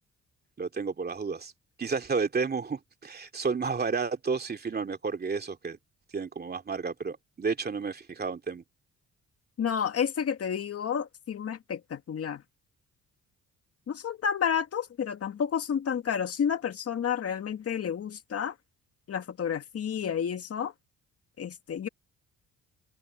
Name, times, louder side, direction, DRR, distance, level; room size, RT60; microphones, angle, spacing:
voice 1, 0.6-1.5 1.8-5.8 6.1-8.6, right 5 dB, 30° right, 2.6 m, -31 dB
voice 2, 9.6-12.4 13.9-18.6 19.1-20.7 21.4-21.9, left 8 dB, 50° left, 2.0 m, -30 dB
cardioid pair, 90°, 30 cm